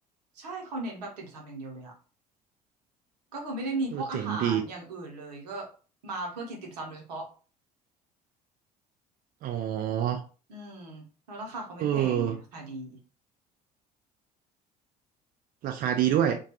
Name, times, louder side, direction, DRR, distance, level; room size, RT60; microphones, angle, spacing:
voice 1, 0.3-1.9 3.3-5.7 6.0-7.3 10.5-13.0, right 2 dB, 80° right, 0.8 m, -37 dB
voice 2, 3.9-4.6 9.4-10.2 11.8-12.4 15.6-16.4, right 10 dB, 45° right, 0.4 m, -27 dB
2.3 x 2.2 x 2.8 m
hypercardioid pair, 60°, 21 cm